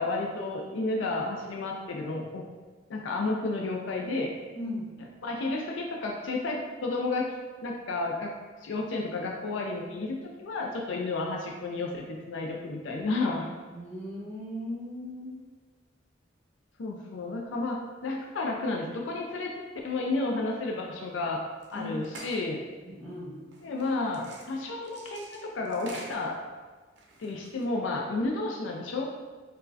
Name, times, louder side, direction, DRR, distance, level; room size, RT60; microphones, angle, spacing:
voice 1, 0.0-2.5 2.9-4.3 5.2-7.3 7.6-8.3 8.6-13.5 16.8-19.5 19.8-21.4 21.7-22.6 23.6-26.4 27.2-29.1, left 2 dB, 70° left, 0 dB, 0.4 m, -31 dB
voice 2, 4.5-4.9 13.7-15.4 21.7-21.9 22.8-23.4, left 1 dB, 10° left, -10 dB, 1.2 m, -37 dB
sound 1, 21.6-21.8 22.0-22.5 23.5-26.4 27.0-27.6, right 2 dB, 65° right, 0.5 m, -47 dB
4.4 x 2.1 x 2.6 m, 1.4 s
head